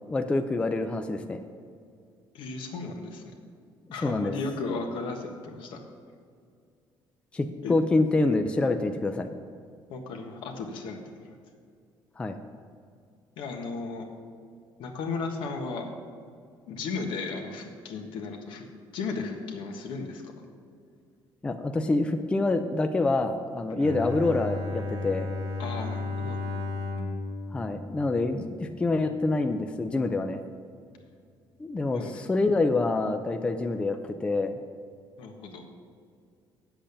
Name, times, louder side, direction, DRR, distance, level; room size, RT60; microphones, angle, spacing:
voice 1, 0.1-1.4 4.0-4.3 7.3-9.3 12.2-12.4 21.4-25.3 27.5-30.4 31.6-34.6, left 2 dB, 10° left, 7 dB, 0.4 m, -26 dB
voice 2, 2.3-3.2 3.9-5.8 7.6-7.7 9.9-11.0 13.4-14.1 14.8-15.9 16.7-18.6 18.9-20.2 25.6-26.4 31.9-32.2 35.2-35.6, left 4 dB, 75° left, 3 dB, 1.5 m, -35 dB
Bowed string instrument, 23.8-28.8, left 2 dB, 80° right, 1.7 m, -34 dB
8.6 x 7.8 x 6.8 m, 2.2 s
cardioid pair, 165°, 9 cm